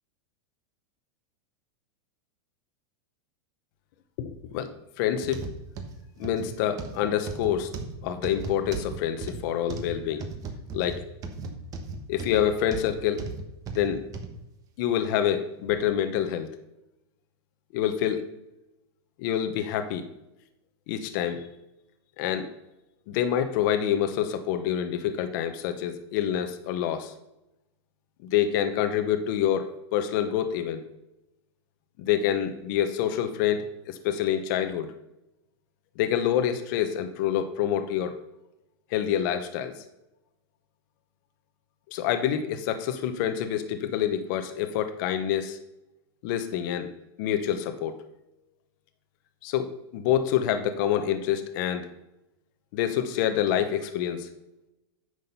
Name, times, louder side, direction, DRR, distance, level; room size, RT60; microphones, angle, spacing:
voice 1, 4.2-4.7 5.0-5.4 6.2-7.7 8.0-10.2 10.7-11.0 12.1-13.3 13.7-14.0 14.8-16.5 17.7-18.2 19.2-20.1 20.9-21.5 22.2-22.5 23.1-27.1 28.2-30.8 32.0-34.9 36.0-38.2 38.9-39.7 41.9-45.6 46.2-46.9 47.2-48.0 49.4-51.9 52.7-54.3, left 10 dB, 50° left, 8 dB, 0.9 m, -27 dB
sound 1, 5.2-14.3 14.9-15.0 15.7-15.8, right 4 dB, 25° right, 1.2 m, -37 dB
9.4 x 6.4 x 5.5 m, 0.91 s
supercardioid pair, 155°, 13 cm